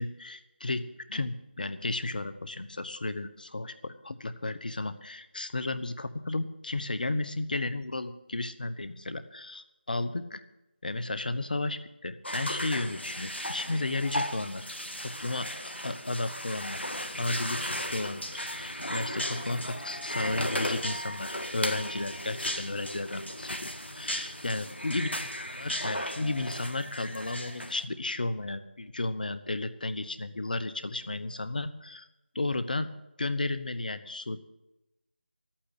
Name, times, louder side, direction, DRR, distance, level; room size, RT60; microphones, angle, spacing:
voice 1, 0.0-10.4 10.8-14.7 15.0-15.5 15.8-16.8 17.2-32.0 32.3-32.9 33.2-34.4, left 2 dB, 50° left, 12 dB, 1.0 m, -33 dB
sound 1, 12.2-27.8, equal, 85° left, 1.7 m, -36 dB
11.5 x 8.8 x 8.8 m, 0.94 s
figure-of-eight pair, 165°, 6 cm